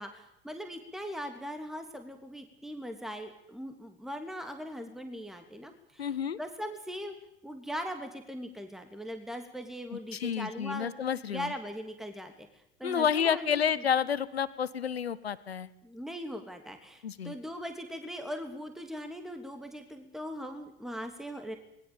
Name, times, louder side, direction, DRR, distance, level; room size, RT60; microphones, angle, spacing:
voice 1, 0.0-7.1 7.4-10.9 11.3-13.6 15.8-21.6, equal, ahead, 6 dB, 2.8 m, -40 dB
voice 2, 6.0-6.4 9.9-11.5 12.8-15.7 17.0-17.3, left 8 dB, 80° left, 17 dB, 1.1 m, -30 dB
28.0 x 20.5 x 7.1 m, 0.81 s
figure-of-eight pair, 70°, 31 cm